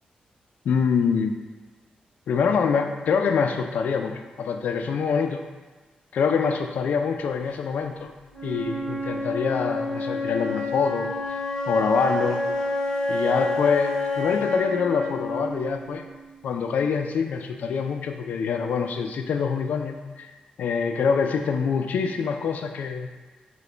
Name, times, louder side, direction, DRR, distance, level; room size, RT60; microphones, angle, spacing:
voice 1, 0.7-1.3 2.3-5.4 6.1-8.1 8.4-11.1 11.7-12.5 13.1-16.0 16.4-20.3 20.6-23.1, left 6 dB, 75° left, 6 dB, 0.3 m, -25 dB
Wind instrument woodwind instrument, 8.3-16.3, left 2 dB, 5° left, 1.4 m, -29 dB
6.0 x 2.1 x 3.3 m, 1.3 s
wide cardioid pair, 175°, 3 cm